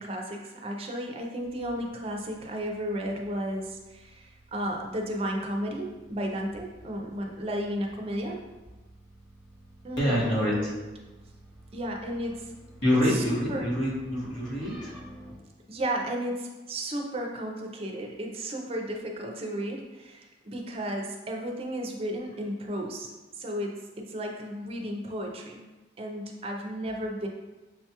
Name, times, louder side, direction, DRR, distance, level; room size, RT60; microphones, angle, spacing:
voice 1, 0.0-8.4 9.8-10.4 11.7-12.5 13.1-13.2 13.5-13.7 15.7-25.6 26.0-27.3, equal, 30° right, 1 dB, 0.4 m, -33 dB
sound 1, 1.4-15.3, right 1 dB, 5° right, 0.8 m, -53 dB
voice 2, 10.0-10.7 12.8-15.0, equal, 85° left, -6 dB, 1.4 m, -26 dB
6.1 x 2.3 x 2.8 m, 1.2 s
head